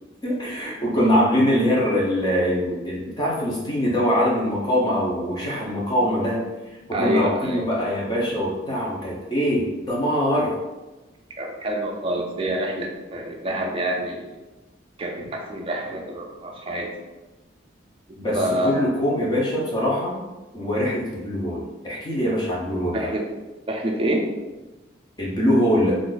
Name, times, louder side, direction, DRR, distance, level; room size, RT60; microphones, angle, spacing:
voice 1, 0.2-6.5 6.9-10.5 18.2-20.2 20.5-23.1 25.2-26.0, equal, 20° left, -4 dB, 0.7 m, -23 dB
voice 2, 6.9-7.7 11.4-14.3 15.0-16.9 18.1-18.7 19.2-19.3 22.9-23.3 23.7-24.3, right 1 dB, 30° right, 0 dB, 0.5 m, -27 dB
2.5 x 2.5 x 3.8 m, 1.1 s
head